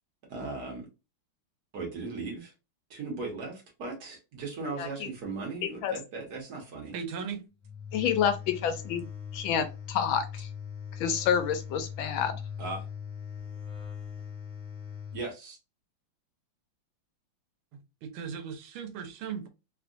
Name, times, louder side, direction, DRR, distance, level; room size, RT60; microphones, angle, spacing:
voice 1, 0.3-0.9 1.7-2.5 2.9-6.9 12.6-12.8 15.1-15.6, right 3 dB, 55° right, 1.4 m, -37 dB
voice 2, 6.9-7.5 17.7-19.5, right 6 dB, 90° right, 1.5 m, -37 dB
sound 1, 7.6-15.2, left 7 dB, 5° left, 0.9 m, -40 dB
voice 3, 7.9-9.0 9.3-10.5 11.0-12.4, left 8 dB, 75° left, 1.3 m, -28 dB
3.6 x 2.3 x 2.5 m
omnidirectional pair, 2.3 m